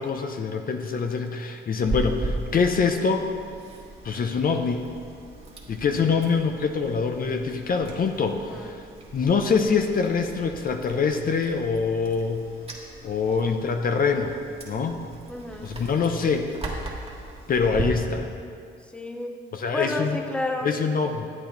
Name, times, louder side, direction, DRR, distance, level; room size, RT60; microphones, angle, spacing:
voice 1, 0.0-3.3 4.0-4.9 5.7-8.9 9.1-12.4 13.0-14.4 14.7-15.0 15.6-16.5 17.5-18.3 19.5-20.3 20.6-21.3, left 5 dB, 45° left, 5 dB, 0.7 m, -24 dB
Chewing mastication, 1.8-17.8, right 2 dB, 30° right, 1.6 m, -38 dB
voice 2, 15.3-15.7 18.9-20.7, left 2 dB, 5° left, 4 dB, 0.8 m, -31 dB
11.0 x 8.5 x 3.9 m, 2.3 s
cardioid pair, 90°, 20 cm